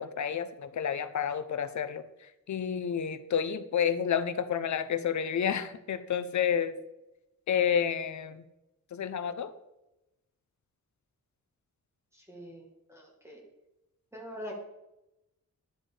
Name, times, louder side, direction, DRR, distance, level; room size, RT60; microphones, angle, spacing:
voice 1, 0.0-2.0 2.5-6.7 7.5-8.4 8.9-9.5, left 8 dB, 65° left, 11 dB, 0.6 m, -30 dB
voice 2, 12.1-13.4 14.1-14.5, equal, 10° right, -1 dB, 1.4 m, -44 dB
10.5 x 7.6 x 3.3 m, 0.95 s
wide cardioid pair, 160°, 31 cm